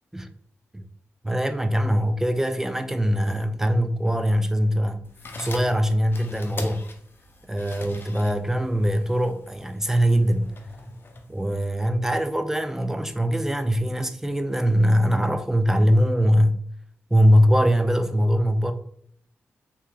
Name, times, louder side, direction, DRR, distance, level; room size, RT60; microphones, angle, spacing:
voice 1, 1.2-5.1 5.4-6.9 7.5-10.5 11.3-16.6 17.1-18.7, equal, 10° right, 0.4 m, -22 dB
sound 1, 5.1-11.9, left 2 dB, 45° left, 0.6 m, -40 dB
3.2 x 2.8 x 3.5 m
cardioid pair, 80°, 5 cm